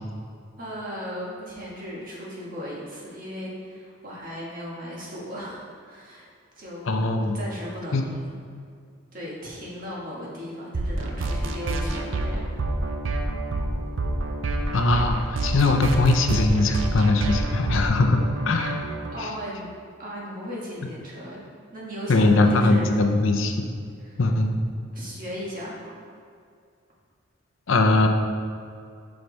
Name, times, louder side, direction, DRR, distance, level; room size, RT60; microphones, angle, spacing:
voice 1, 0.6-6.3 6.6-8.3 9.1-12.6 19.1-19.7 20.0-21.4 21.7-23.0 24.0-24.2 24.9-26.1, equal, 40° right, -5 dB, 1.5 m, -36 dB
voice 2, 6.9-7.4 7.9-8.0 14.7-18.8 19.2-19.3 22.1-23.7 24.2-24.6 27.7-28.1, left 2 dB, 70° left, 5 dB, 0.6 m, -21 dB
sound 1, 10.7-19.1, right 2 dB, 65° right, 0.6 m, -27 dB
5.9 x 5.1 x 4.0 m, 2.3 s
head